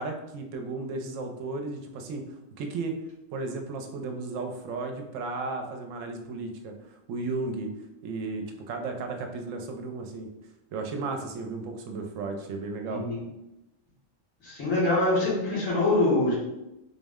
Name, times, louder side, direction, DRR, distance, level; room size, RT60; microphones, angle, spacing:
voice 1, 0.0-2.2 2.6-2.9 3.3-6.7 7.1-7.7 8.0-10.3 10.7-13.0, right 3 dB, 80° right, 4 dB, 0.9 m, -34 dB
voice 2, 12.9-13.3 14.4-16.3, left 2 dB, 90° left, -7 dB, 1.6 m, -24 dB
3.8 x 2.1 x 3.5 m, 0.91 s
omnidirectional pair, 1.3 m